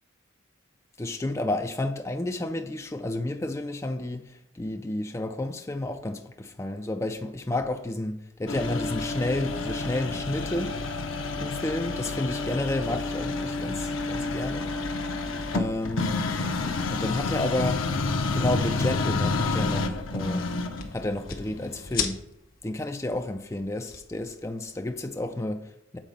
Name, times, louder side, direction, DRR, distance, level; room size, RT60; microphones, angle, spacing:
voice 1, 1.0-10.8 11.4-14.7 15.5-16.2 16.9-17.9 18.3-20.5 20.9-22.2 22.6-26.0, left 1 dB, 15° left, 0.4 m, -31 dB
sound 1, 8.5-22.0, left 3 dB, 70° left, 0.7 m, -29 dB
sound 2, 9.6-19.3, right 1 dB, 30° right, 2.5 m, -54 dB
sound 3, 18.3-25.1, left 7 dB, 45° left, 0.9 m, -40 dB
7.4 x 4.1 x 5.2 m
head